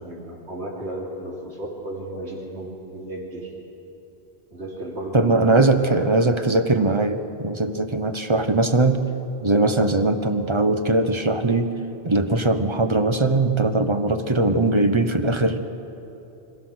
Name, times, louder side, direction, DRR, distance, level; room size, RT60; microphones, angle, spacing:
voice 1, 0.0-3.5 4.5-6.0 10.2-10.3, right 1 dB, 80° right, -3 dB, 3.6 m, -34 dB
voice 2, 5.1-9.0 9.4-11.7 12.0-15.6, right 2 dB, 30° right, 8 dB, 0.9 m, -20 dB
26.0 x 15.5 x 6.4 m, 3.0 s
omnidirectional pair, 1.1 m